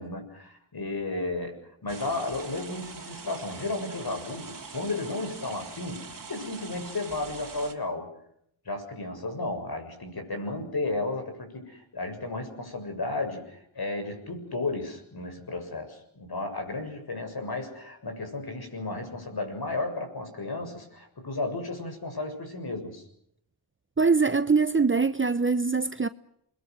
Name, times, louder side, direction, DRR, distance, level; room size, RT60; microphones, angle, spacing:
voice 1, 0.0-8.1 8.7-23.0, left 2 dB, 50° left, 7.3 m, -33 dB
sound 1, 1.9-7.7, right 4 dB, 45° right, 3.3 m, -43 dB
voice 2, 24.0-26.1, right 4 dB, 25° right, 0.9 m, -23 dB
28.5 x 22.5 x 6.3 m
cardioid pair, 70°, 47 cm